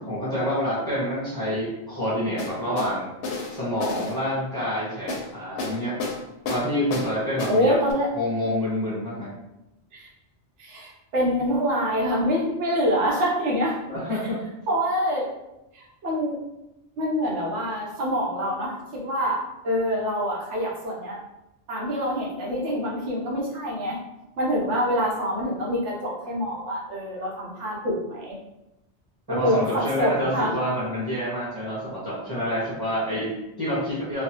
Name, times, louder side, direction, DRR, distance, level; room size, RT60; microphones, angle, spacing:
voice 1, 0.1-3.1 3.5-6.0 6.5-7.8 8.1-9.3 13.9-14.4 29.3-34.2, equal, 20° right, -8 dB, 0.9 m, -27 dB
sound 1, 2.4-2.9 3.2-4.2 5.1-5.3 5.6-6.2 6.5-7.1 7.4-7.6 7.9-8.0, left 3 dB, 85° left, 0.9 m, -30 dB
voice 2, 7.5-8.1 9.9-10.1 10.6-13.8 14.1-14.2 14.7-15.3 15.7-16.4 17.0-21.2 21.7-24.0 24.4-28.4 29.3-30.5, equal, 85° right, -2 dB, 1.1 m, -26 dB
3.1 x 2.1 x 2.9 m, 0.93 s
omnidirectional pair, 1.2 m